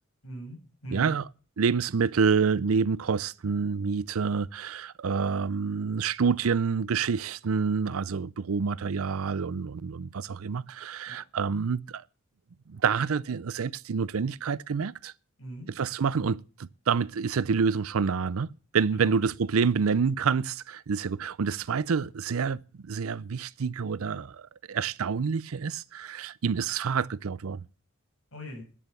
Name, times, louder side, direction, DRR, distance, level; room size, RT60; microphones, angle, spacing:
voice 1, 0.2-1.2 11.1-11.2 15.4-15.7 18.9-19.2 28.3-28.6, right 1 dB, 85° left, 6.7 m, -41 dB
voice 2, 0.9-1.2 1.6-12.0 12.7-15.1 15.8-27.6, right 5 dB, 85° right, 0.5 m, -28 dB
11.0 x 8.9 x 6.9 m
head